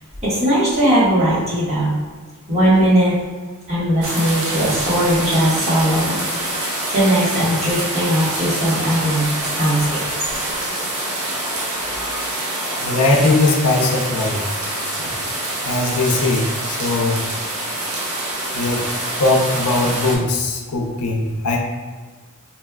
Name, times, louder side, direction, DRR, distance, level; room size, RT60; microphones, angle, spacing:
voice 1, 0.2-1.9 2.5-3.1 3.7-6.2 6.9-9.2 9.6-10.0, right 1 dB, 30° right, -8 dB, 1.4 m, -18 dB
sound 1, 4.0-20.1, right 1 dB, 65° right, 0.9 m, -25 dB
voice 2, 12.8-14.4 15.0-15.1 15.6-17.2 18.5-18.9 19.2-21.6, left 2 dB, 90° left, 1 dB, 0.6 m, -19 dB
4.3 x 3.2 x 2.2 m, 1.4 s
head